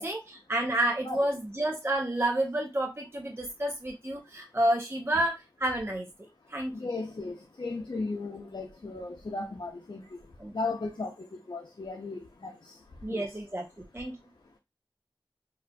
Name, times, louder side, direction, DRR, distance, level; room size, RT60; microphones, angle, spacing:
voice 1, 0.0-6.7 10.4-10.5 13.0-14.2, right 1 dB, 30° right, 0.6 m, -30 dB
voice 2, 6.7-10.2 10.5-12.8 13.1-13.3, left 3 dB, 70° left, 0.5 m, -36 dB
4.1 x 2.4 x 2.2 m
wide cardioid pair, 40°, 8 cm